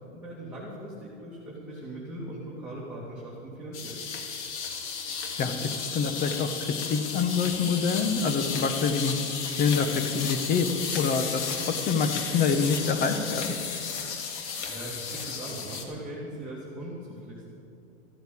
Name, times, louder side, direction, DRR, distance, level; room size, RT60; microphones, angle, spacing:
voice 1, 0.1-4.0 14.4-17.4, right 1 dB, 5° right, -8 dB, 2.4 m, -40 dB
sound 1, 3.7-15.8, left 6 dB, 60° left, 2.0 m, -34 dB
voice 2, 5.4-9.1 9.5-10.7 10.9-13.5, left 5 dB, 20° left, 8 dB, 1.0 m, -26 dB
14.0 x 7.9 x 8.4 m, 2.6 s
hypercardioid pair, 130°, 40 cm